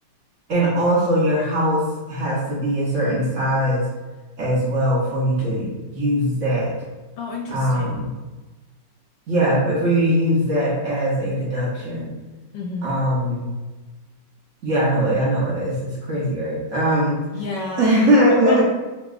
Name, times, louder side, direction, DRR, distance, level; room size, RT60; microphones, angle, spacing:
voice 1, 0.5-1.8 2.1-3.9 4.4-6.7 7.5-8.1 9.3-12.1 12.8-13.5 14.6-17.2 17.8-18.6, equal, 50° right, -6 dB, 1.0 m, -21 dB
voice 2, 7.2-8.0 12.5-12.9 17.3-17.9 18.3-18.6, left 3 dB, 75° left, 0 dB, 1.2 m, -29 dB
5.1 x 2.8 x 2.3 m, 1.2 s
omnidirectional pair, 2.0 m